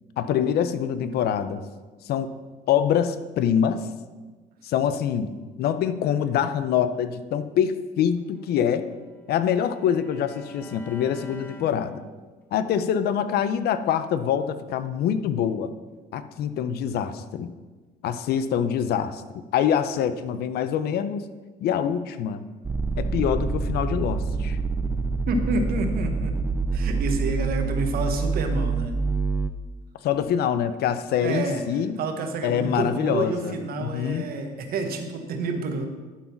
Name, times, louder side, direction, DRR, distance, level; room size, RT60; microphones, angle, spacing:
voice 1, 0.2-1.6 2.0-2.3 2.7-3.8 4.6-5.3 5.6-8.8 9.3-12.0 12.5-15.7 16.1-17.5 18.0-21.2 21.6-22.4 23.0-24.6 30.0-32.0 32.4-34.2, left 8 dB, 70° left, 11 dB, 0.6 m, -25 dB
Bowed string instrument, 8.3-12.5, right 1 dB, 10° left, 1.4 m, -48 dB
sound 1, 22.6-29.5, right 4 dB, 15° right, 0.5 m, -26 dB
voice 2, 25.3-26.4 26.7-29.0 31.2-31.6 32.0-35.9, right 3 dB, 65° right, 6 dB, 1.2 m, -29 dB
11.5 x 4.0 x 5.9 m, 1.3 s
cardioid pair, 110°, 17 cm